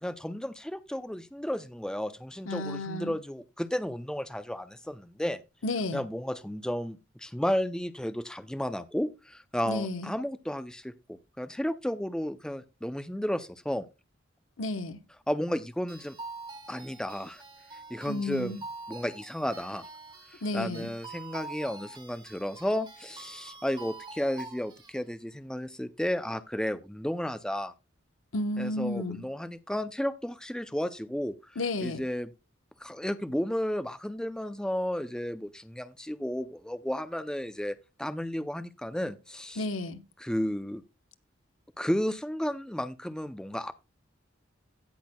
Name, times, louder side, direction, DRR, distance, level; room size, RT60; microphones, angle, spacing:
voice 1, 0.0-5.4 5.9-13.9 15.3-16.2 16.7-17.4 17.9-18.6 18.9-19.8 20.3-27.7 28.6-31.4 31.8-32.3 32.8-39.7 40.2-40.8 41.8-43.7, equal, 5° left, 0.4 m, -33 dB
voice 2, 2.5-3.1 5.6-6.0 9.7-10.1 14.6-15.0 18.0-18.6 20.4-20.9 28.3-29.2 31.6-32.0 39.6-40.0, left 2 dB, 85° left, 1.0 m, -32 dB
sound 1, 15.9-25.0, right 3 dB, 25° right, 2.0 m, -45 dB
16.5 x 6.1 x 2.2 m
head